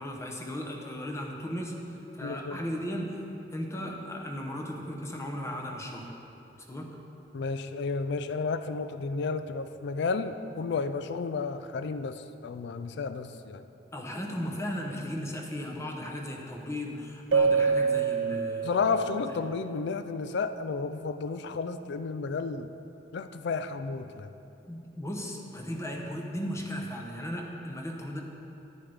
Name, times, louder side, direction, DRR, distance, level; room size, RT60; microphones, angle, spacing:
voice 1, 0.0-1.8 2.1-3.1 3.5-6.1 6.7-7.0 13.9-18.8 19.3-19.4 24.7-28.2, equal, 15° left, 1 dB, 0.8 m, -36 dB
voice 2, 2.2-2.6 7.3-13.6 18.6-22.7 23.1-24.3, left 4 dB, 65° left, 11 dB, 0.4 m, -32 dB
Keyboard (musical), 17.3-19.8, right 5 dB, 75° right, 0.5 m, -27 dB
9.7 x 9.1 x 3.4 m, 2.8 s
head